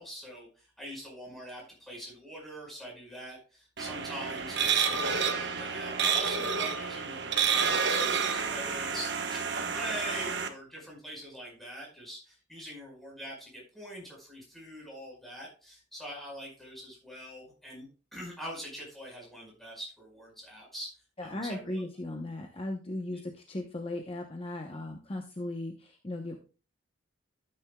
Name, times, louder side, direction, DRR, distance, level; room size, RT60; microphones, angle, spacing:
voice 1, 0.0-21.8 23.1-23.2, equal, ahead, -3 dB, 5.0 m, -43 dB
sound 1, 3.8-10.5, right 6 dB, 60° right, 1.2 m, -29 dB
voice 2, 21.2-26.4, left 1 dB, 30° left, 3 dB, 0.9 m, -37 dB
13.0 x 8.8 x 2.3 m, 0.36 s
head